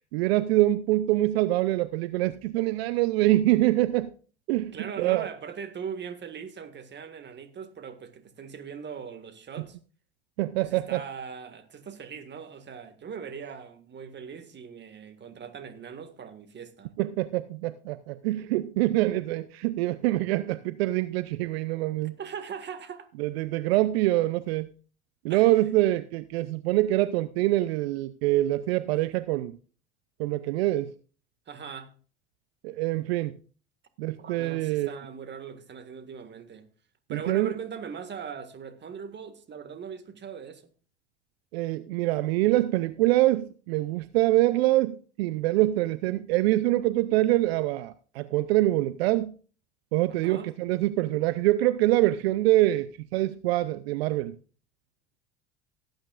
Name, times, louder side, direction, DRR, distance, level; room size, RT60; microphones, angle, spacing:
voice 1, 0.1-4.1 4.5-5.3 10.4-11.0 17.0-22.2 23.2-24.7 25.2-29.5 30.2-30.9 32.6-33.3 34.0-34.9 37.1-37.5 41.5-49.4 49.9-54.4, right 16 dB, 75° right, 0.6 m, -25 dB
voice 2, 4.7-9.8 10.6-16.9 22.2-23.1 25.3-25.5 31.5-31.9 34.2-36.7 37.1-40.7 50.2-50.5, right 7 dB, 35° right, 1.8 m, -40 dB
17.5 x 9.0 x 2.4 m
hypercardioid pair, 75°, 32 cm